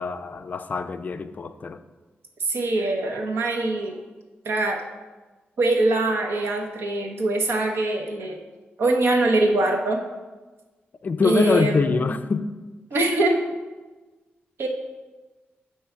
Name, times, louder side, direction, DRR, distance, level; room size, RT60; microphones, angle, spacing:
voice 1, 0.0-1.8 11.0-12.5, left 4 dB, 40° left, 0.3 m, -24 dB
voice 2, 2.4-4.0 4.4-4.8 5.6-8.4 8.8-10.0 11.2-12.0 12.9-13.4 14.6-14.7, right 2 dB, 70° right, 1.0 m, -23 dB
7.9 x 3.1 x 5.6 m
wide cardioid pair, 115°, 4 cm